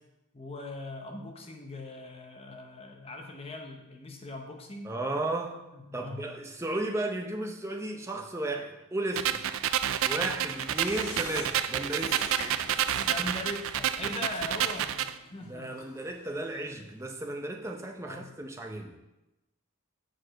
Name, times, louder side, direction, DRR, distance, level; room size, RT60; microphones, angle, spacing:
voice 1, 0.3-4.9 5.7-6.3 13.0-15.9 18.0-18.3, left 2 dB, 25° left, 2 dB, 0.7 m, -40 dB
voice 2, 4.8-5.6 5.9-9.4 10.0-12.2 15.4-19.0, right 2 dB, 10° right, 2 dB, 0.6 m, -34 dB
sound 1, 9.2-15.1, right 10 dB, 65° right, 0.3 m, -29 dB
sound 2, 9.9-17.0 17.3-17.4, left 2 dB, 90° left, 1.6 m, -45 dB
6.4 x 4.8 x 6.3 m, 1.0 s
head